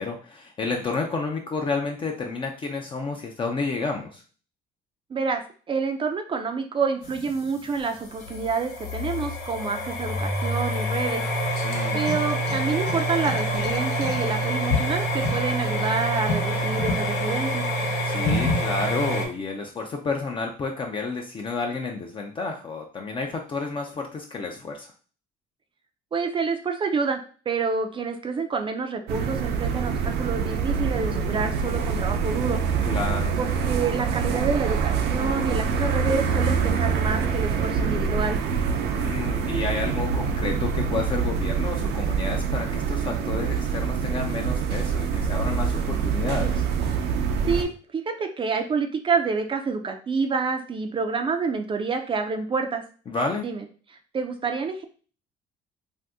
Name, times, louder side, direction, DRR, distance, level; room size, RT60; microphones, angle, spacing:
voice 1, 0.0-4.2 11.6-12.1 18.0-24.9 32.8-33.4 38.9-46.7 53.1-53.5, left 4 dB, 30° left, 2 dB, 0.4 m, -30 dB
voice 2, 5.1-5.4 5.7-11.2 11.9-17.7 26.1-27.2 27.5-32.6 33.4-38.4 47.5-52.8 53.4-53.6 54.1-54.8, right 5 dB, 30° right, 4 dB, 0.4 m, -28 dB
sound 1, 7.0-19.3, equal, 90° left, 1.0 m, -26 dB
sound 2, 29.1-47.6, right 6 dB, 80° right, 0.6 m, -25 dB
2.6 x 2.5 x 3.5 m, 0.40 s
cardioid pair, 110°, 17 cm